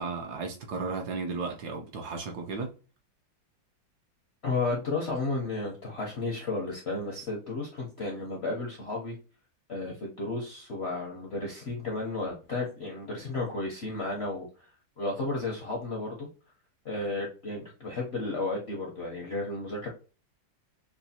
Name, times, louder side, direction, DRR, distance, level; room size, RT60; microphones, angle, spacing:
voice 1, 0.0-2.7, right 4 dB, 70° right, 1.1 m, -34 dB
voice 2, 4.4-9.1 9.7-14.7 15.0-16.3 16.8-19.9, left 3 dB, 60° left, 0.7 m, -33 dB
6.0 x 2.3 x 2.7 m
omnidirectional pair, 2.0 m